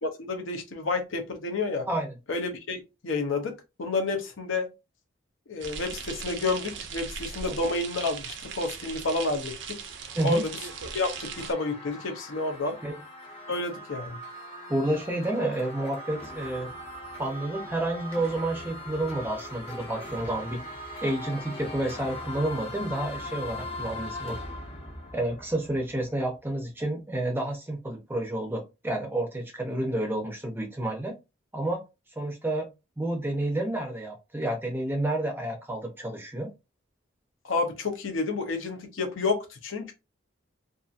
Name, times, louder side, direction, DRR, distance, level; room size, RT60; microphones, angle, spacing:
voice 1, 0.0-1.9 2.3-4.7 5.5-9.8 10.2-10.5 10.9-12.8 13.5-14.2 37.4-39.9, left 3 dB, 70° left, 0.6 m, -30 dB
sound 1, 5.6-11.5, right 6 dB, 60° right, 0.5 m, -39 dB
sound 2, 9.4-26.2, left 1 dB, 30° left, 0.7 m, -40 dB
voice 2, 14.7-16.7 17.2-20.6 21.0-24.4 25.1-31.2 31.5-31.8 32.2-32.7 33.0-36.5, right 1 dB, 10° right, 0.6 m, -30 dB
2.7 x 2.5 x 2.4 m
head